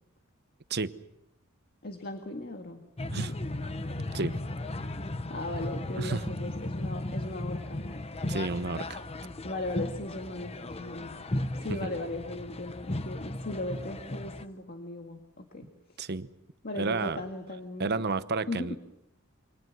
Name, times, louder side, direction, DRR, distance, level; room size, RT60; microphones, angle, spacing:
voice 1, 1.8-2.8 3.2-3.3 5.3-8.0 9.4-11.2 11.5-16.0 16.6-18.0 18.5-18.8, left 2 dB, 50° left, 4 dB, 1.9 m, -38 dB
sound 1, 3.0-14.4, left 1 dB, 30° left, 0.9 m, -36 dB
voice 2, 8.3-9.0 11.7-11.8 16.0-16.3 16.7-17.2 17.8-18.8, right 3 dB, 50° right, 13 dB, 0.9 m, -31 dB
28.5 x 24.5 x 6.2 m, 0.84 s
head